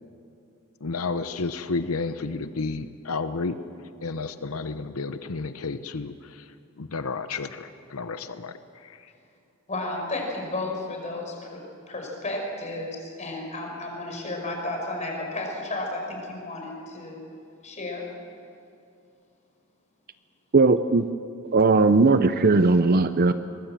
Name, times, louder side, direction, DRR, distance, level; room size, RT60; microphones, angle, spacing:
voice 1, 0.8-3.6 4.0-6.5 6.8-8.6 8.8-9.0, left 4 dB, 80° left, 10 dB, 0.8 m, -31 dB
voice 2, 9.7-17.3 17.6-18.0, left 2 dB, 35° left, 1 dB, 5.2 m, -33 dB
voice 3, 20.5-21.0 21.5-23.3, right 3 dB, 45° right, 11 dB, 0.6 m, -18 dB
23.5 x 20.5 x 7.6 m, 2.5 s
head